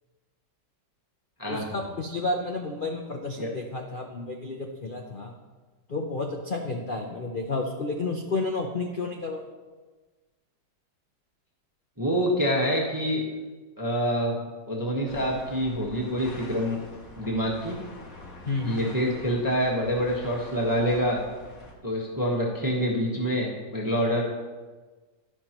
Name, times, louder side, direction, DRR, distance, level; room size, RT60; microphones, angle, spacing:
voice 1, 1.5-5.3 5.9-9.4 18.5-18.9, left 3 dB, 70° left, 2 dB, 0.5 m, -31 dB
voice 2, 12.0-13.2 13.8-14.4 14.7-16.8 17.2-17.7 18.6-21.2 21.8-24.2, equal, 15° right, -3 dB, 1.1 m, -26 dB
sound 1, 15.1-21.7, left 1 dB, 50° left, 1.8 m, -45 dB
11.0 x 11.0 x 3.0 m, 1.3 s
omnidirectional pair, 2.0 m